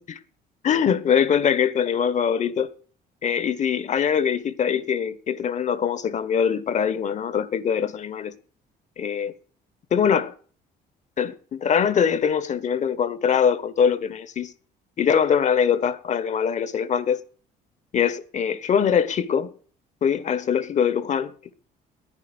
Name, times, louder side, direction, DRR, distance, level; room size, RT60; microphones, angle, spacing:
voice 1, 0.6-2.7 3.2-8.3 9.0-9.3 9.9-10.3 11.2-14.5 15.0-17.2 17.9-19.5 20.0-21.5, left 7 dB, 45° left, 1.2 m, -23 dB
11.0 x 9.7 x 7.8 m
cardioid pair, 110°, 17 cm